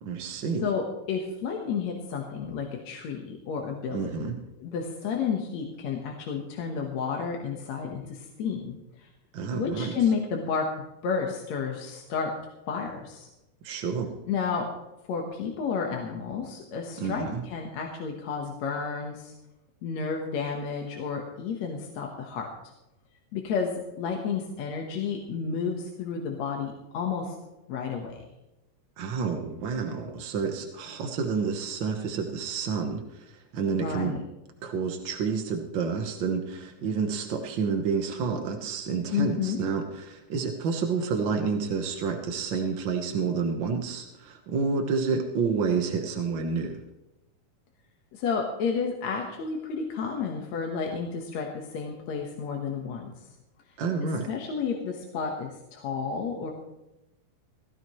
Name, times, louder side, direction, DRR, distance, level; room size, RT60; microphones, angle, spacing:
voice 1, 0.0-0.6 3.9-4.3 9.3-9.9 13.6-14.1 17.0-17.4 29.0-34.2 34.6-46.8 53.8-54.3, right 5 dB, 70° right, 3 dB, 1.1 m, -29 dB
voice 2, 0.6-4.3 4.6-8.7 9.0-9.1 9.5-10.6 11.0-12.3 12.7-13.3 14.3-14.7 15.1-19.3 19.8-22.5 23.3-23.7 24.0-27.4 27.7-28.2 33.7-34.2 39.1-39.6 48.1-53.1 54.0-56.5, left 6 dB, 65° left, 1 dB, 2.3 m, -31 dB
17.0 x 15.0 x 3.1 m, 0.94 s
omnidirectional pair, 3.7 m